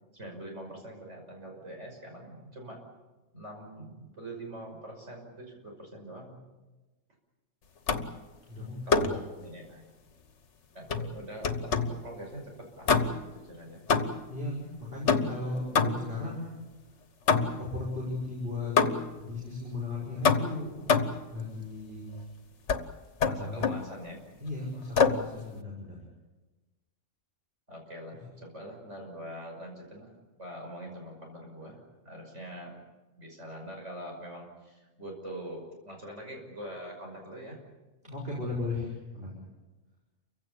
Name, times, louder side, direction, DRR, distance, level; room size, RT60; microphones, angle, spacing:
voice 1, 0.1-2.8 3.3-6.4 8.9-9.9 10.7-13.9 23.2-24.2 27.7-32.8 33.2-37.6, right 1 dB, 70° right, 1 dB, 6.3 m, -44 dB
sound 1, 7.9-8.2 8.9-9.3 10.9-12.0 12.9-13.4 13.9-14.4 15.1-16.2 17.3-17.7 18.8-19.2 20.2-21.3 22.7-22.9 23.2-23.9 25.0-25.3, left 5 dB, 65° left, 1.5 m, -26 dB
voice 2, 8.5-9.1 14.3-16.5 17.3-18.7 19.2-20.8 21.3-22.3 23.2-23.6 24.4-26.0 38.0-39.4, left 2 dB, 50° right, -4 dB, 5.9 m, -36 dB
29.0 x 16.0 x 8.5 m, 1.2 s
omnidirectional pair, 1.3 m